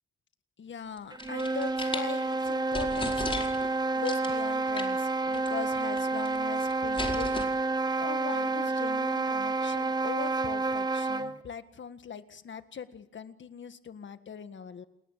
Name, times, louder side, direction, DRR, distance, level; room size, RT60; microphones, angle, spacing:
voice 1, 0.6-3.3 3.6-14.8, left 7 dB, 60° left, 10 dB, 1.7 m, -41 dB
sound 1, 1.0-2.1 2.5-2.6 2.7-3.7 4.1-4.4 4.8-5.1 5.3-5.5 5.7-6.4 6.6-7.5, left 2 dB, 25° left, 4.7 m, -36 dB
sound 2, 1.1-11.4, right 3 dB, 20° right, 1.3 m, -29 dB
29.5 x 21.0 x 7.5 m, 0.83 s
wide cardioid pair, 105°, 21 cm